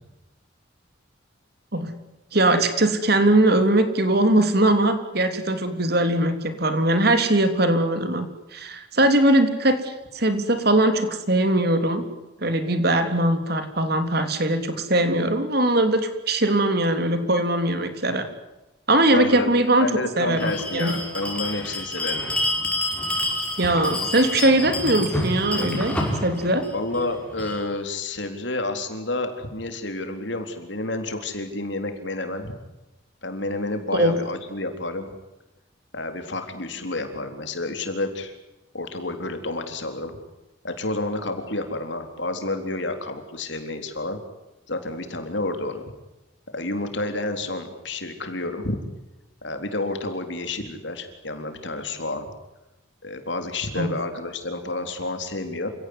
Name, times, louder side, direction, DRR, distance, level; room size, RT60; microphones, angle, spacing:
voice 1, 2.3-8.3 8.5-12.0 12.4-18.3 18.9-19.9 20.2-20.9 23.6-25.9 26.2-26.6 33.9-34.1 53.8-53.9, right 1 dB, 55° right, 8 dB, 3.3 m, -21 dB
voice 2, 19.1-19.5 19.8-22.2 25.6-25.8 26.7-32.5 33.2-35.1 35.9-38.3 38.7-40.1 40.6-44.2 44.7-45.9 46.5-48.8 49.4-52.3 53.0-55.7, left 2 dB, 65° left, 7 dB, 3.9 m, -30 dB
Bell, 20.4-27.6, left 1 dB, 5° left, 6.0 m, -28 dB
28.5 x 17.5 x 9.8 m, 1.0 s
head